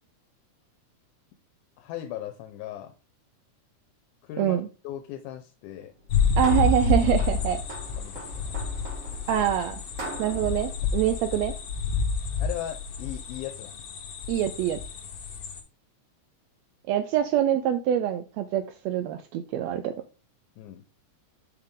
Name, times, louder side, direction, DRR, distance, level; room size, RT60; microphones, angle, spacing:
voice 1, 1.8-2.9 4.2-5.9 8.0-8.6 12.4-13.8 20.6-20.8, left 12 dB, 85° left, 7 dB, 2.1 m, -38 dB
voice 2, 4.4-4.7 6.4-7.6 9.3-9.8 10.2-11.5 14.3-14.8 16.9-19.9, right 10 dB, 85° right, 10 dB, 1.5 m, -25 dB
sound 1, 6.0-11.8, right 2 dB, 55° right, 0.9 m, -42 dB
sound 2, 6.1-15.6, left 4 dB, 60° left, 1.8 m, -29 dB
5.9 x 5.7 x 3.6 m, 0.32 s
omnidirectional pair, 3.5 m